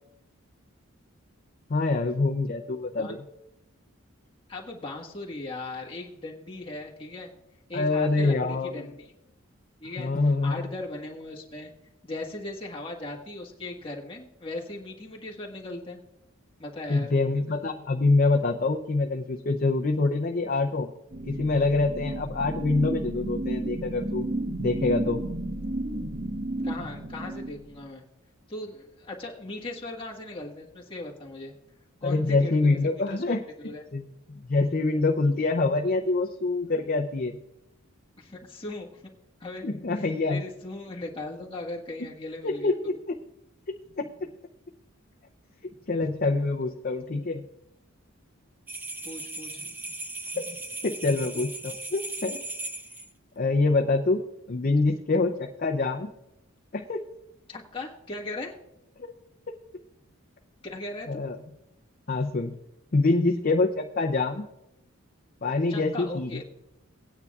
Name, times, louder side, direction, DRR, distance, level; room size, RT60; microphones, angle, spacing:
voice 1, 1.7-3.2 7.7-8.7 10.0-10.6 16.9-20.9 21.3-24.3 24.6-25.2 32.0-33.4 33.9-34.1 34.5-37.4 39.6-40.4 42.4-43.2 44.0-44.1 45.9-47.4 50.3-52.4 53.4-54.2 54.5-56.1 56.7-57.0 59.0-59.1 61.1-61.4 62.1-62.6 62.9-64.5 65.4-66.4, left 3 dB, 45° left, 3 dB, 0.6 m, -25 dB
voice 2, 4.5-7.3 7.7-9.1 9.8-11.7 12.0-16.0 16.6-17.1 26.6-28.0 28.5-31.5 32.0-33.8 38.2-39.0 39.4-39.7 39.9-42.9 49.0-49.6 57.5-58.5 60.6-61.2 64.2-64.3 65.7-66.4, left 2 dB, 25° left, -2 dB, 1.5 m, -38 dB
sound 1, 21.1-27.8, right 1 dB, 35° right, 1.0 m, -32 dB
sound 2, 48.7-53.1, right 2 dB, 10° right, 0.4 m, -37 dB
18.5 x 9.5 x 2.4 m, 0.88 s
head